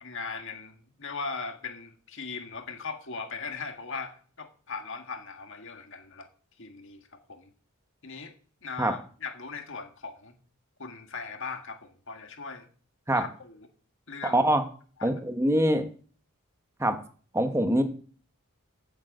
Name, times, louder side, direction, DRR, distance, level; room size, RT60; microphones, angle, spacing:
voice 1, 0.0-6.3 6.6-7.5 8.0-8.3 8.6-10.3 10.8-12.7 13.1-13.7 14.1-14.4 15.0-15.2, left 4 dB, 55° left, 5 dB, 1.9 m, -39 dB
voice 2, 15.0-15.8 16.8-17.0 17.3-17.8, right 1 dB, 10° right, 7 dB, 1.2 m, -23 dB
9.3 x 8.0 x 8.0 m, 0.43 s
head